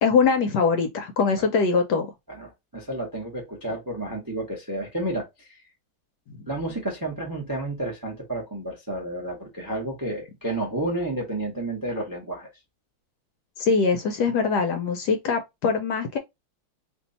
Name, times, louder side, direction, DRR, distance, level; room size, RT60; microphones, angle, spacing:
voice 1, 0.0-2.1 13.6-16.2, left 5 dB, 70° left, 1.0 m, -22 dB
voice 2, 2.3-5.5 6.5-12.5, right 1 dB, 20° right, 0.5 m, -31 dB
2.9 x 2.7 x 4.0 m
omnidirectional pair, 2.1 m